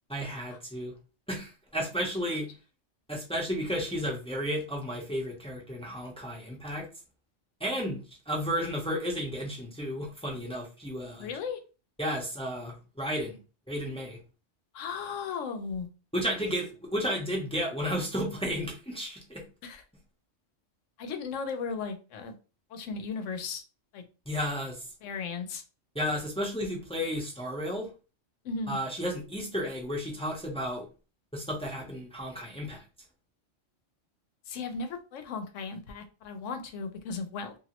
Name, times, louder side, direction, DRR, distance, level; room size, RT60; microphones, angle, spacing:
voice 1, 0.1-0.9 1.3-2.5 3.1-6.9 7.6-11.3 12.0-13.4 13.7-14.2 16.1-19.4 24.3-24.8 25.9-27.9 28.7-30.8 31.3-32.8, equal, 5° left, -1 dB, 0.5 m, -33 dB
voice 2, 11.2-11.6 14.7-15.9 16.3-16.5 19.6-19.8 21.0-22.4 22.7-23.6 23.9-24.0 25.0-25.6 28.4-28.8 34.5-37.5, left 5 dB, 90° left, 7 dB, 1.0 m, -36 dB
2.9 x 2.6 x 2.9 m, 0.33 s
omnidirectional pair, 1.3 m